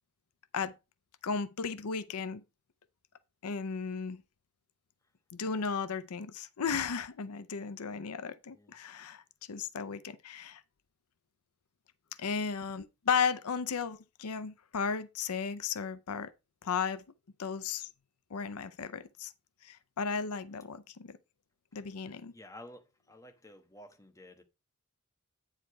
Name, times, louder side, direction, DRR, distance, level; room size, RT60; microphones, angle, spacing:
voice 1, 1.2-2.4 3.4-4.2 5.3-9.2 9.5-10.6 12.2-16.3 16.6-17.0 17.4-17.9 18.3-19.3 19.6-21.2 21.7-22.3, left 6 dB, 85° left, 0.6 m, -35 dB
voice 2, 22.3-24.4, left 1 dB, 15° left, 1.2 m, -52 dB
8.8 x 4.9 x 4.7 m
head